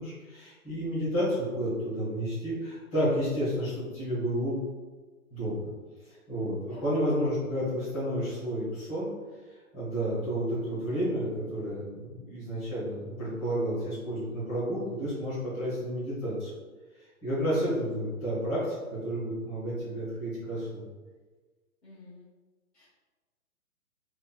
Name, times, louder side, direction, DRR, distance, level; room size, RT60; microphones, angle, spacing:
voice 1, 0.0-4.7 5.3-5.7 6.0-9.1 9.5-16.5 16.9-20.9, equal, 20° left, -12 dB, 1.4 m, -31 dB
voice 2, 21.8-22.3 22.7-22.9, left 2 dB, 45° left, -9 dB, 1.2 m, -51 dB
3.6 x 2.6 x 2.2 m, 1.3 s
hypercardioid pair, 165°, 44 cm